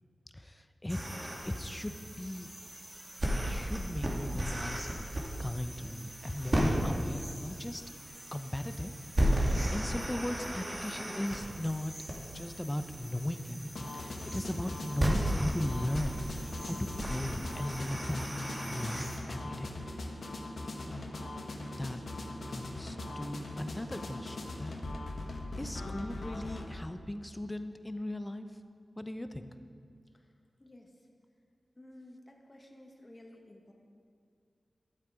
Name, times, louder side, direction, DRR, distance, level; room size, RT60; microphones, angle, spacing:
voice 1, 0.3-1.0 1.4-2.5 3.5-5.1 5.4-7.8 8.3-8.9 9.2-11.9 12.3-19.8 20.9-21.1 21.8-22.0 22.5-24.7 25.3-28.5 29.0-29.5, left 1 dB, 20° left, 9 dB, 0.7 m, -37 dB
sound 1, 0.9-19.2, right 1 dB, 40° right, 2.1 m, -35 dB
sound 2, 13.7-26.7, left 2 dB, 75° left, 1.1 m, -41 dB
voice 2, 30.6-30.9 31.8-33.7, left 1 dB, 35° left, 1 dB, 1.5 m, -53 dB
11.5 x 7.7 x 5.0 m, 2.3 s
cardioid pair, 45°, 0 cm